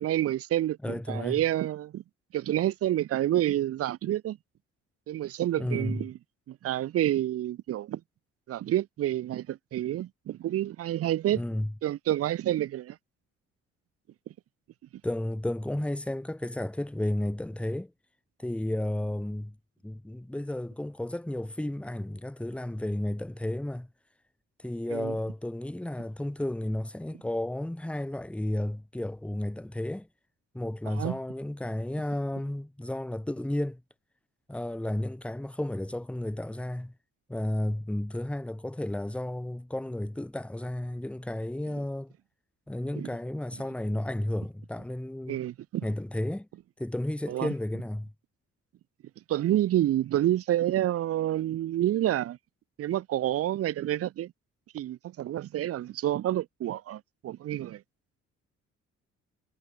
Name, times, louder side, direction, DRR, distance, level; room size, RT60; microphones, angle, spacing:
voice 1, 0.0-2.0 2.3-4.4 5.1-6.1 6.5-8.0 8.5-11.4 11.8-13.0 24.9-25.1 30.9-31.2 43.0-43.1 45.3-45.9 47.3-47.5 49.3-52.4 52.8-54.3 54.7-57.8, right 13 dB, 55° right, 0.5 m, -28 dB
voice 2, 0.8-1.4 5.6-6.0 11.3-11.7 15.0-17.9 18.4-19.6 19.8-23.9 24.6-30.1 30.5-33.8 34.5-36.9 37.3-42.1 42.7-45.4 45.8-46.5 46.8-48.1, left 1 dB, 5° left, 1.4 m, -32 dB
cardioid pair, 115°, 29 cm